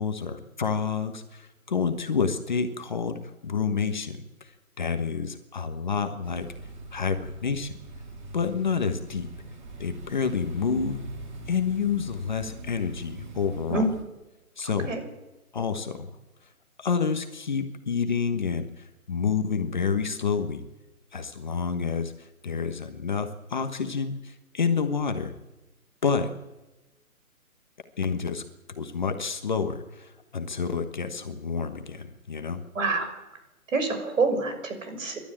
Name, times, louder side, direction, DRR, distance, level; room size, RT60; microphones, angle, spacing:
voice 1, 0.0-6.5 6.9-7.8 8.3-9.3 9.8-11.0 11.5-13.8 14.6-14.9 15.5-16.1 16.8-20.6 21.1-25.3 26.0-26.3 28.0-28.4 28.8-32.6, left 5 dB, 30° left, 7 dB, 1.2 m, -29 dB
sound 1, 6.2-14.0, right 1 dB, 30° right, 2.7 m, -42 dB
voice 2, 14.6-15.0 32.7-33.1 33.7-35.2, right 3 dB, 60° right, 7 dB, 6.4 m, -27 dB
27.0 x 12.5 x 8.9 m, 1.0 s
hypercardioid pair, 170°, 44 cm